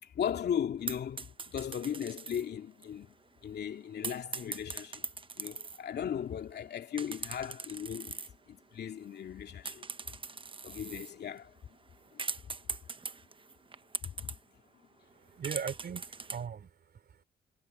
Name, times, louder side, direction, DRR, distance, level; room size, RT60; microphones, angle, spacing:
voice 1, 0.0-3.1 3.4-5.1 5.4-8.2 8.5-9.8 10.6-11.5 12.1-12.2 14.0-14.3, left 8 dB, 60° left, 2.5 m, -37 dB
sound 1, 0.9-2.5 2.8-2.9 4.0-5.8 7.0-8.3 8.8-9.4 9.6-14.4 15.1-15.2 15.4-16.4, right 4 dB, 25° right, 1.1 m, -41 dB
voice 2, 15.1-17.2, right 7 dB, 55° right, 4.0 m, -40 dB
supercardioid pair, 60°, 19 cm